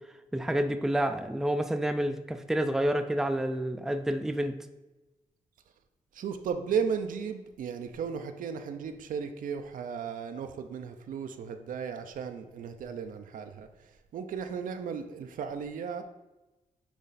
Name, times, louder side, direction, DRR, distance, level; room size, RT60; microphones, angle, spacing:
voice 1, 0.3-4.6, right 1 dB, 5° right, 8 dB, 0.4 m, -29 dB
voice 2, 6.1-16.0, right 6 dB, 80° right, 7 dB, 0.6 m, -35 dB
9.3 x 3.2 x 4.1 m, 1.1 s
cardioid pair, 115°, 14 cm